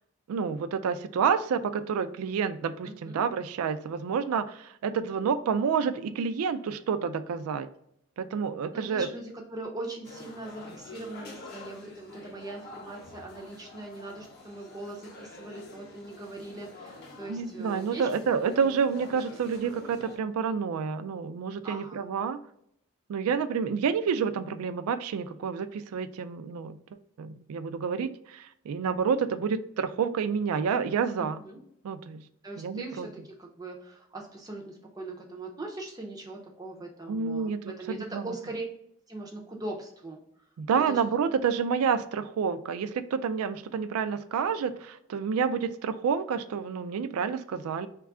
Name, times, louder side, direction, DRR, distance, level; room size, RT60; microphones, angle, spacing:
voice 1, 0.3-7.7 8.2-9.1 17.3-22.4 23.1-26.8 27.2-31.4 31.8-32.2 32.6-33.1 37.1-38.3 40.6-47.9, right 6 dB, 80° right, 13 dB, 0.3 m, -29 dB
voice 2, 2.8-3.2 8.7-18.1 18.4-18.5 21.6-22.1 31.1-31.6 32.4-33.1 33.4-38.6 39.1-40.2 40.9-41.0, right 2 dB, 15° right, 0 dB, 0.4 m, -41 dB
sound 1, 10.0-20.2, left 2 dB, 45° left, 0.6 m, -47 dB
3.2 x 2.3 x 3.6 m, 0.72 s
head